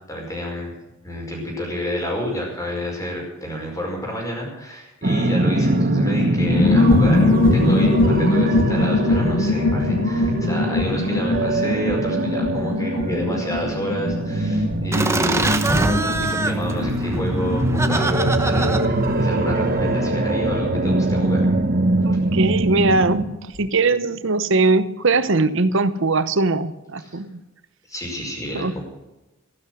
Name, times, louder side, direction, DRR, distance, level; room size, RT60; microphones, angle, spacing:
voice 1, 0.1-0.7 1.0-21.5 27.0-27.2 27.9-28.8, equal, 15° left, 0 dB, 5.3 m, -29 dB
sound 1, 5.0-23.3, right 1 dB, 45° right, 1.2 m, -22 dB
sound 2, 6.4-22.7 22.9-23.0 23.2-23.6, left 2 dB, 65° left, 0.7 m, -23 dB
Laughter, 14.9-20.1, right 2 dB, 15° right, 1.0 m, -25 dB
voice 2, 22.0-27.4 28.5-28.8, right 3 dB, 65° right, 13 dB, 1.0 m, -21 dB
14.5 x 12.0 x 6.4 m, 1.0 s
head